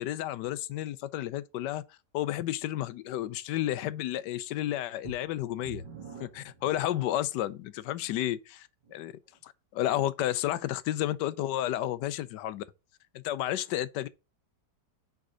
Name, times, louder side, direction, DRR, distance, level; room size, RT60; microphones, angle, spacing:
voice 1, 0.0-1.8 2.1-5.8 6.2-9.1 9.4-12.6 13.1-14.1, left 13 dB, 80° left, 1.2 m, -31 dB
sound 1, 5.0-7.5 8.1-8.2 8.8-8.9, right 4 dB, 85° right, 2.6 m, -46 dB
5.3 x 5.0 x 6.2 m
omnidirectional pair, 1.8 m